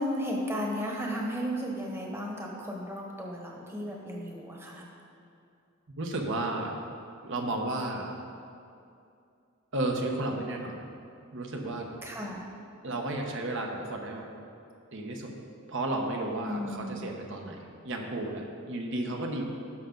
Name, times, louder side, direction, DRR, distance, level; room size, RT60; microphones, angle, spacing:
voice 1, 0.0-4.8 12.0-12.4 16.5-17.1, equal, 10° right, -1 dB, 1.1 m, -34 dB
voice 2, 6.0-6.7 7.2-8.2 9.7-10.8 11.3-11.9 12.8-14.3 14.9-15.3 15.7-19.4, right 2 dB, 60° right, 2 dB, 1.0 m, -33 dB
12.5 x 5.7 x 3.9 m, 2.5 s
head